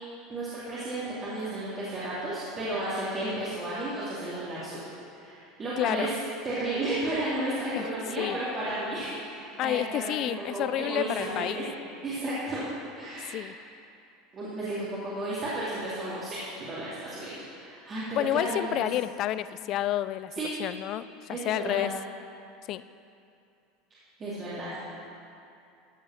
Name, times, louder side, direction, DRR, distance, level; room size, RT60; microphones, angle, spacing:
voice 1, 0.3-4.8 5.1-6.1 6.4-11.6 12.0-12.7 13.0-13.4 14.3-18.6 20.4-20.5 21.3-21.8 24.2-24.7, right 1 dB, 30° right, -10 dB, 2.5 m, -33 dB
voice 2, 5.8-6.1 7.8-7.9 8.2-8.4 9.6-11.7 13.3-13.6 18.1-20.3 20.6-21.9 22.7-22.8, left 13 dB, 45° left, 15 dB, 0.3 m, -29 dB
14.0 x 5.5 x 6.3 m, 2.6 s
supercardioid pair, 130°, 0 cm